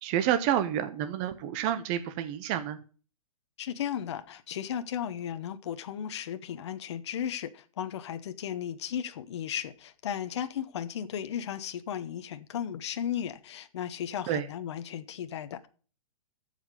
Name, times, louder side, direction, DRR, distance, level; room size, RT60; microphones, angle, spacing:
voice 1, 0.0-2.8 14.3-14.5, right 10 dB, 20° right, 0.4 m, -29 dB
voice 2, 3.6-15.7, left 9 dB, 50° left, 0.9 m, -35 dB
14.0 x 5.1 x 5.2 m
hypercardioid pair, 170°, 18 cm